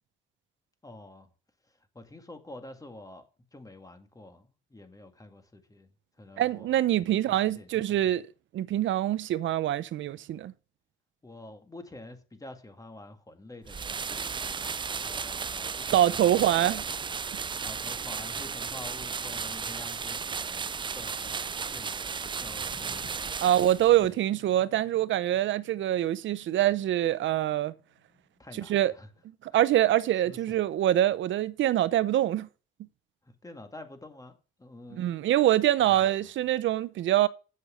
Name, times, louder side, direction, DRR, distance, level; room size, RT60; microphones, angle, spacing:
voice 1, 0.8-1.3 1.7-5.9 6.2-6.8 7.1-8.2 11.2-16.9 17.6-23.4 23.8-24.1 28.4-29.1 29.5-29.6 29.9-30.6 33.2-35.1 35.8-36.3, left 2 dB, 15° left, 2.1 m, -48 dB
voice 2, 6.4-8.2 8.5-10.5 15.9-16.8 23.4-27.7 28.7-28.9 29.4-32.5 35.0-37.3, right 12 dB, 70° right, 0.8 m, -25 dB
sound 1, 13.6-24.1, right 5 dB, 25° right, 0.4 m, -34 dB
sound 2, 21.2-28.6, left 2 dB, 35° left, 3.1 m, -58 dB
8.4 x 7.6 x 6.5 m
cardioid pair, 90°, 20 cm